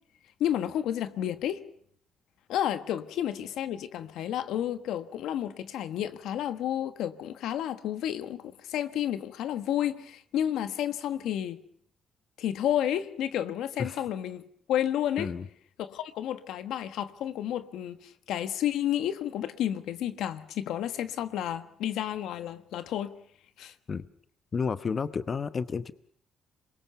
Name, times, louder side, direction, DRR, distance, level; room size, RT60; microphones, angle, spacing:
voice 1, 0.4-1.6 2.5-11.6 12.4-15.3 15.8-23.1 23.6-23.7, left 11 dB, 85° left, 1.4 m, -31 dB
voice 2, 24.5-25.9, left 5 dB, 40° left, 0.9 m, -31 dB
26.5 x 22.5 x 6.8 m
cardioid pair, 90°, 0 cm